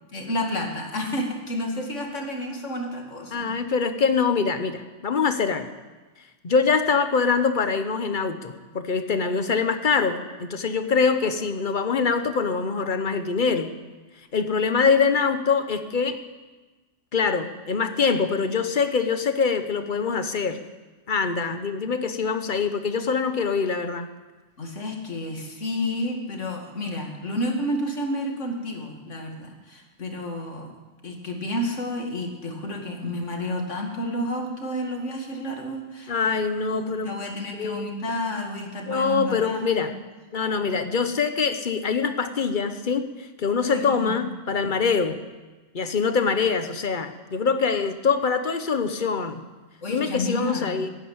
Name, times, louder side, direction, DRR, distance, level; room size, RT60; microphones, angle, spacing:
voice 1, 0.1-3.5 24.6-30.7 31.0-36.1 36.7-39.9 43.7-44.3 44.6-44.7 49.8-50.9, left 1 dB, 70° left, 2 dB, 2.6 m, -30 dB
voice 2, 3.3-5.7 6.4-13.7 14.3-16.2 17.1-20.6 21.1-24.1 36.1-37.1 37.6-37.9 38.9-39.9 40.3-45.2 45.7-49.4 49.9-50.9, left 5 dB, 45° left, 9 dB, 1.1 m, -24 dB
15.5 x 10.0 x 8.7 m, 1.3 s
omnidirectional pair, 1.3 m